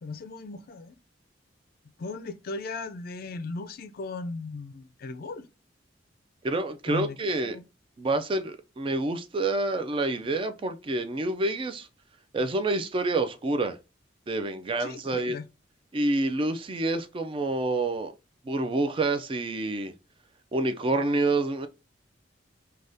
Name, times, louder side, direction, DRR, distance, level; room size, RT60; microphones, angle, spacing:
voice 1, 0.0-0.9 2.0-5.5 6.9-7.6 14.8-15.4, left 3 dB, 55° left, 0.4 m, -37 dB
voice 2, 6.4-7.6 8.0-11.9 12.3-13.8 14.3-15.4 15.9-18.1 18.4-19.9 20.5-21.7, right 2 dB, 30° right, 0.3 m, -28 dB
3.4 x 2.3 x 2.6 m
head